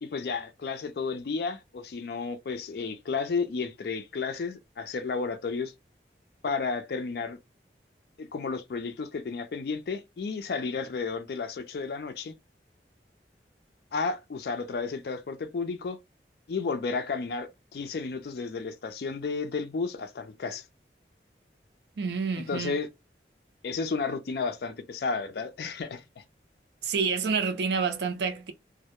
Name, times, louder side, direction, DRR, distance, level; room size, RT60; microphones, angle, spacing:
voice 1, 0.0-5.7 6.4-7.4 8.2-12.3 13.9-16.0 16.5-20.6 22.4-22.9 23.6-26.2, left 4 dB, 60° left, 0.4 m, -32 dB
voice 2, 22.0-22.8 26.8-28.5, right 5 dB, 75° right, 0.5 m, -28 dB
2.1 x 2.1 x 2.8 m
head